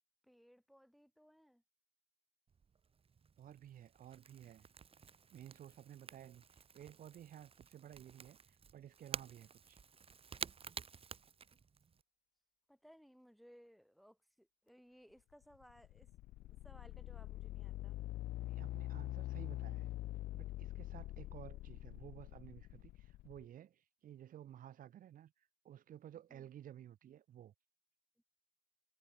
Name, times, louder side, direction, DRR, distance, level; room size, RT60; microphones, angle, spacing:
voice 1, 0.2-1.6 12.7-16.1 16.4-18.0 26.3-26.5 28.2-28.3, equal, ahead, 4.2 m, -63 dB
Crackle / Crack, 2.5-12.0, right 6 dB, 35° right, 4.2 m, -51 dB
voice 2, 3.4-4.7 5.3-9.8 18.4-19.9 20.3-27.5, right 11 dB, 55° right, 1.6 m, -55 dB
sound 1, 15.4-23.4, left 16 dB, 60° left, 0.4 m, -44 dB
cardioid pair, 110°, 17 cm